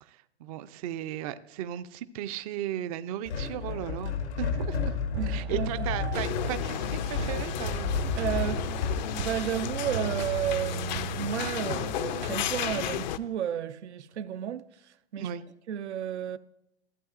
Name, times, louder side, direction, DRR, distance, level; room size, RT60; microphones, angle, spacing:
voice 1, 0.0-5.0 5.3-8.0 15.2-15.4, right 11 dB, 35° right, 0.4 m, -36 dB
sound 1, 3.3-9.1, left 5 dB, 85° left, 1.1 m, -32 dB
sound 2, 5.1-13.2, right 7 dB, 70° right, 1.2 m, -38 dB
voice 2, 5.2-5.9 8.2-14.6 15.1-15.3 15.7-16.4, right 10 dB, 85° right, 0.6 m, -32 dB
sound 3, 6.1-13.2, left 11 dB, 45° left, 0.4 m, -33 dB
14.5 x 8.1 x 2.4 m
hypercardioid pair, 130°, 34 cm